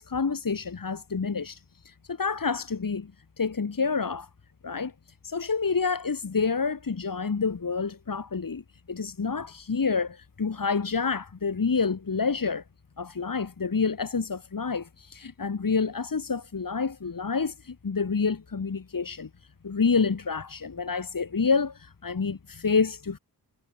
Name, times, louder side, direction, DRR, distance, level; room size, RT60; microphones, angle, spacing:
voice 1, 0.0-3.1 3.4-4.3 4.6-4.9 5.2-8.6 8.9-12.6 13.0-19.3 19.6-23.2, left 5 dB, 60° left, 3.2 m, -28 dB
wide cardioid pair, 80°, 38 cm